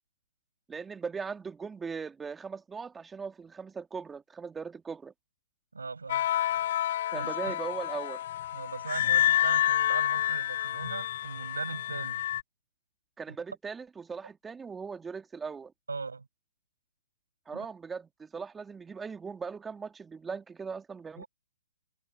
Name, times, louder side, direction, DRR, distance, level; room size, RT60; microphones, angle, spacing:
voice 1, 0.7-5.1 7.1-8.2 13.2-15.7 17.5-21.2, right 5 dB, 10° right, 2.1 m, -39 dB
voice 2, 5.7-6.3 7.1-7.5 8.5-12.2 13.3-13.4 15.9-16.3 17.5-17.7 21.2-21.3, right 4 dB, 85° right, 6.0 m, -39 dB
sound 1, 6.1-12.4, left 12 dB, 50° left, 0.8 m, -29 dB
hypercardioid pair, 130°, 0 cm